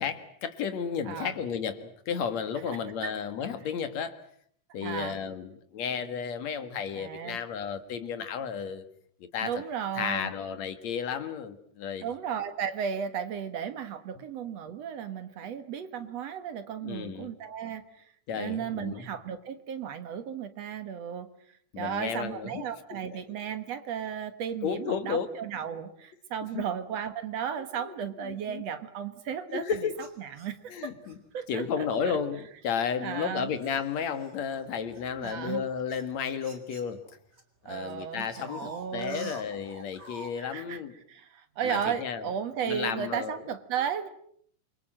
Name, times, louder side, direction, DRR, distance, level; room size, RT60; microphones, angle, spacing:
voice 1, 0.0-4.2 4.7-8.8 9.3-9.6 10.0-12.1 16.8-17.3 18.3-19.1 21.7-22.6 23.1-23.2 24.6-25.3 26.5-26.7 27.8-28.6 29.5-30.0 30.7-31.2 31.5-37.0 37.6-40.9 41.6-42.3 42.6-43.4, left 7 dB, 60° left, 9 dB, 2.9 m, -33 dB
voice 2, 4.8-5.2 7.0-7.4 9.4-10.3 12.0-17.8 18.3-21.3 21.8-29.7 30.2-30.9 31.3-32.2 33.0-33.5 35.2-35.6 37.7-39.3 40.4-40.8 41.1-44.1, right 8 dB, 60° right, 10 dB, 2.4 m, -34 dB
sound 1, 29.9-31.2 31.9-32.2 32.8-37.4 37.7-40.3, right 2 dB, 20° right, 3.0 m, -48 dB
28.0 x 24.0 x 7.7 m, 0.65 s
omnidirectional pair, 3.6 m